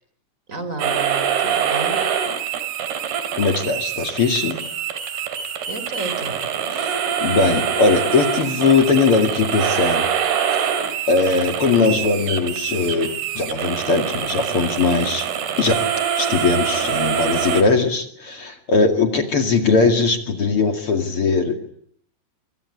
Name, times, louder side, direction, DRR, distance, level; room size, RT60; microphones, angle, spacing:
voice 1, 0.5-2.0 5.7-6.4, right 2 dB, 15° right, 10 dB, 3.9 m, -31 dB
sound 1, 0.8-17.6, right 8 dB, 55° right, 4.1 m, -24 dB
voice 2, 3.4-4.6 6.7-10.1 10.6-10.7 11.1-15.2 15.6-15.8 16.2-21.6, left 4 dB, 50° left, 6 dB, 1.7 m, -20 dB
25.0 x 23.0 x 9.8 m, 0.67 s
omnidirectional pair, 5.9 m